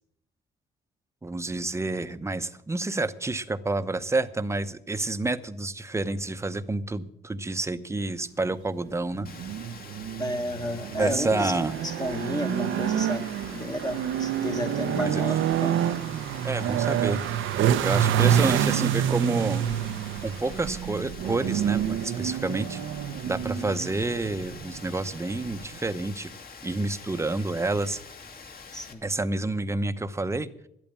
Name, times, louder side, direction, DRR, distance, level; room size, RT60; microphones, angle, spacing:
voice 1, 1.2-9.3 11.0-11.7 14.9-15.2 16.4-17.2 17.8-19.7 20.2-22.8 23.3-26.3 26.6-28.0 29.0-30.5, right 2 dB, 15° right, 12 dB, 0.9 m, -29 dB
sound 1, 9.1-25.8, right 10 dB, 75° right, 0.7 m, -28 dB
Rain, 9.2-28.9, left 5 dB, 50° left, 2.3 m, -46 dB
voice 2, 10.2-11.5 11.8-15.8 23.5-23.6 28.7-29.0, equal, 20° left, 6 dB, 1.2 m, -32 dB
12.0 x 8.8 x 8.7 m, 0.75 s
cardioid pair, 90°, 20 cm